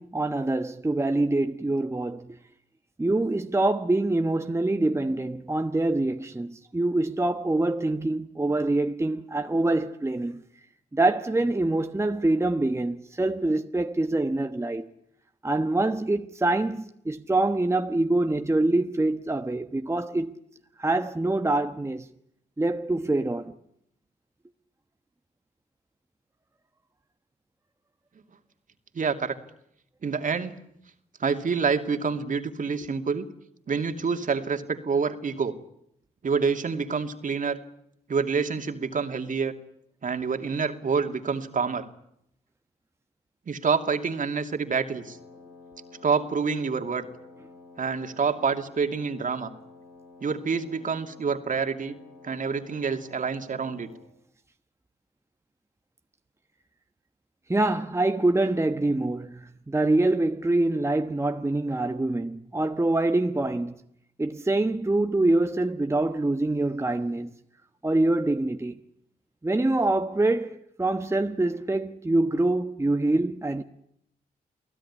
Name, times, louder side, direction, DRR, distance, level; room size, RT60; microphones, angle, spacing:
voice 1, 0.0-2.4 3.0-10.4 10.9-14.9 15.4-20.3 20.8-22.1 22.6-23.5 57.5-63.7 64.2-67.3 67.8-68.8 69.4-73.6, right 2 dB, 15° right, 1.2 m, -25 dB
voice 2, 28.9-29.3 30.0-30.6 31.2-33.3 33.7-35.6 36.2-37.6 38.1-39.5 40.0-41.9 43.5-45.2 46.0-47.1 47.8-49.5 50.2-52.0 52.2-53.9, right 5 dB, 50° right, 2.7 m, -27 dB
Wind instrument woodwind instrument, 44.8-54.2, left 3 dB, 90° left, 4.5 m, -51 dB
28.5 x 17.0 x 10.0 m
cardioid pair, 60°, 17 cm